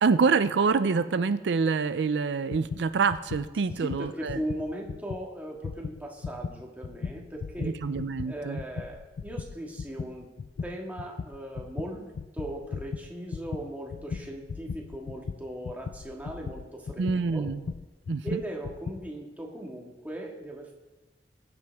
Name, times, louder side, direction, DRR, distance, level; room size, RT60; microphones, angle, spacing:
voice 1, 0.0-4.4 7.6-8.6 17.0-17.6 18.1-18.4, right 5 dB, 80° right, 12 dB, 0.4 m, -26 dB
sound 1, 2.5-5.3 5.6-19.1, left 5 dB, 55° left, 0.3 m, -38 dB
voice 2, 3.8-7.8 8.3-10.3 10.6-17.5 18.2-20.7, right 1 dB, 10° right, -1 dB, 1.8 m, -38 dB
20.5 x 7.9 x 3.5 m, 1.2 s
head